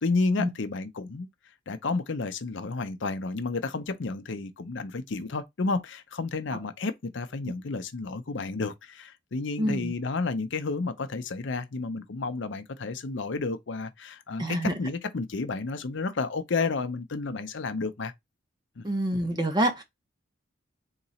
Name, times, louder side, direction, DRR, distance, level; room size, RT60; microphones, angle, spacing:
voice 1, 0.0-1.3 1.7-18.1 18.8-18.9, left 3 dB, 65° left, 0.6 m, -31 dB
voice 2, 9.6-9.9 14.4-14.7 18.8-19.8, right 1 dB, 20° right, 0.9 m, -26 dB
3.9 x 2.9 x 4.1 m
head